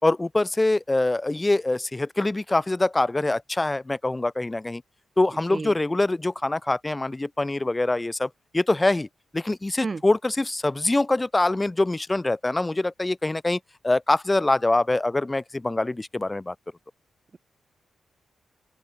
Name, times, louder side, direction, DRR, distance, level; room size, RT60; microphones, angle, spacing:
voice 1, 0.0-4.8 5.2-9.1 9.3-16.5, left 2 dB, 20° left, 4.5 m, -24 dB
voice 2, 5.5-5.8 9.8-10.0, right 4 dB, 40° right, 6.7 m, -31 dB
open air
cardioid pair, 55°, 0 cm